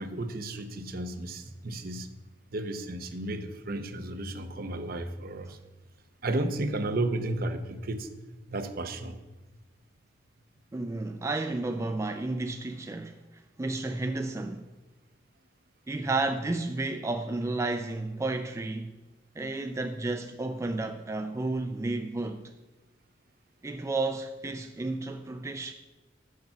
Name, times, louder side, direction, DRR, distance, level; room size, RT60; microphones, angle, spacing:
voice 1, 0.0-2.1 2.5-5.6 6.2-8.1 8.5-9.2, right 2 dB, 50° right, 0.7 m, -33 dB
voice 2, 10.7-14.7 15.9-19.0 19.4-22.4 23.6-25.7, right 2 dB, 15° right, 0.3 m, -32 dB
6.5 x 5.8 x 6.8 m
head